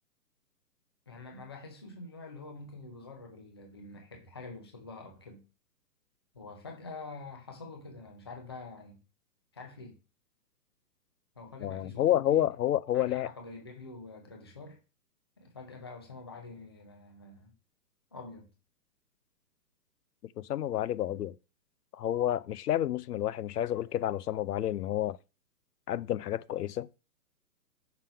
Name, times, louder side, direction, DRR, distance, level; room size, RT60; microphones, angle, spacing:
voice 1, 1.1-5.4 6.3-9.0 9.5-10.0 11.4-12.4 12.9-14.8 15.4-17.5 18.1-18.5, left 3 dB, 15° left, 0.5 m, -46 dB
voice 2, 11.6-13.3 20.4-21.4 21.9-25.2 25.9-26.9, left 12 dB, 70° left, 0.6 m, -29 dB
5.8 x 3.6 x 5.5 m
hypercardioid pair, 160°, 48 cm